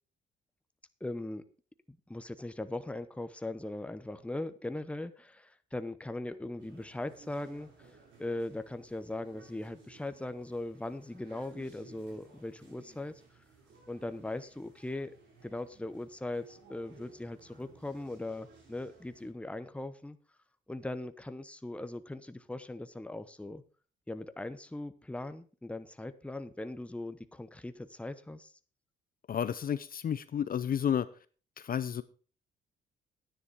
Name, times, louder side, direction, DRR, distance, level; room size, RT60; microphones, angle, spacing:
voice 1, 1.0-1.4 1.9-7.7 8.2-13.2 13.9-15.1 15.4-20.2 20.7-23.6 24.1-28.5, left 2 dB, 5° left, 11 dB, 0.9 m, -39 dB
sound 1, 6.6-19.3, right 4 dB, 70° right, 4.8 m, -58 dB
voice 2, 29.3-31.1 31.6-32.0, left 8 dB, 45° left, 14 dB, 0.6 m, -31 dB
10.5 x 9.8 x 4.7 m, 0.38 s
cardioid pair, 90°, 20 cm